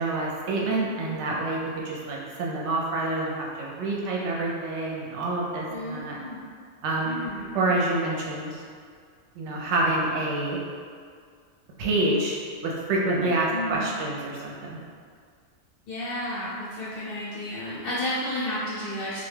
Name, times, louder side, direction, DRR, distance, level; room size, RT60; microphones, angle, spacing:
voice 1, 0.0-6.2 6.8-7.2 7.5-8.6 9.4-10.6 11.8-14.8, right 2 dB, 70° right, -3 dB, 0.8 m, -27 dB
voice 2, 5.7-6.4 7.0-7.6 13.5-13.9 15.9-19.2, left 1 dB, 60° left, -10 dB, 0.7 m, -32 dB
2.3 x 2.2 x 3.2 m, 2.1 s
omnidirectional pair, 1.3 m